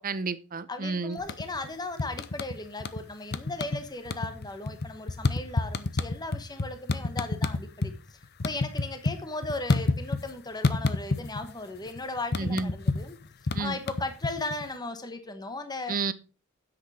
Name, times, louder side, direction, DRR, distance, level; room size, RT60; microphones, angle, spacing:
voice 1, 0.0-1.2 12.4-12.7 13.5-13.8 15.9-16.1, right 4 dB, 45° right, 0.6 m, -30 dB
voice 2, 0.7-7.9 8.4-13.2 13.6-16.0, left 2 dB, 20° left, 1.1 m, -36 dB
sound 1, 1.2-1.7 2.0-3.0 3.3-3.8 4.1-7.9 8.2-10.3 10.6-11.5 11.8-14.6, left 3 dB, 50° left, 0.8 m, -28 dB
9.9 x 7.8 x 4.2 m
head